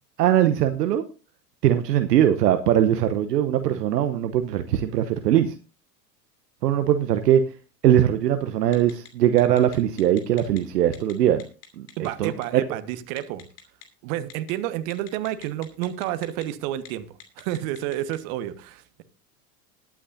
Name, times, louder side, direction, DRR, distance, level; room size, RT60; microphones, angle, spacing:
voice 1, 0.2-1.0 1.6-5.5 6.6-7.4 7.8-11.4 11.8-12.3, right 11 dB, 75° right, 1.0 m, -21 dB
Telephone, 8.7-9.1 9.4-10.6 10.9-11.1 11.4-12.5 13.2-13.8 14.3-14.5 14.9-16.5 16.8-16.9 17.2-18.2, left 10 dB, 70° left, 2.8 m, -44 dB
voice 2, 12.0-13.4 14.0-19.0, right 13 dB, 55° right, 1.3 m, -30 dB
20.5 x 8.7 x 2.6 m
hypercardioid pair, 80°, 49 cm